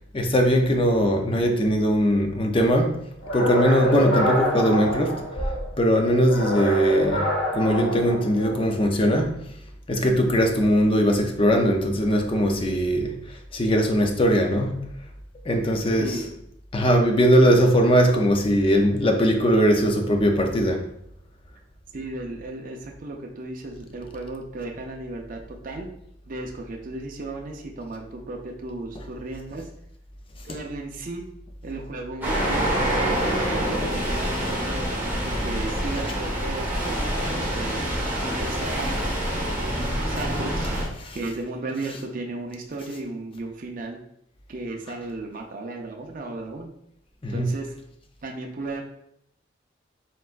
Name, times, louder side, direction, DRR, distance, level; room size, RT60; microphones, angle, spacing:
voice 1, 0.1-3.0 3.3-7.2 7.5-9.4 9.9-14.8 15.5-16.2 16.7-20.8 30.5-30.6 41.0-41.2 47.2-47.5, equal, 30° left, 0.6 m, -20 dB
sound 1, 3.2-5.7 6.2-8.7, equal, 75° left, 1.1 m, -26 dB
voice 2, 16.0-16.3 21.9-25.9 26.3-29.7 30.4-31.2 31.6-34.8 35.2-37.8 38.2-39.2 39.6-40.7 41.1-44.0 44.5-46.7 47.3-47.7 48.2-48.8, right 2 dB, 45° right, 0.5 m, -35 dB
sound 2, 32.2-40.8, right 1 dB, 10° right, 1.2 m, -26 dB
4.3 x 3.9 x 2.5 m
head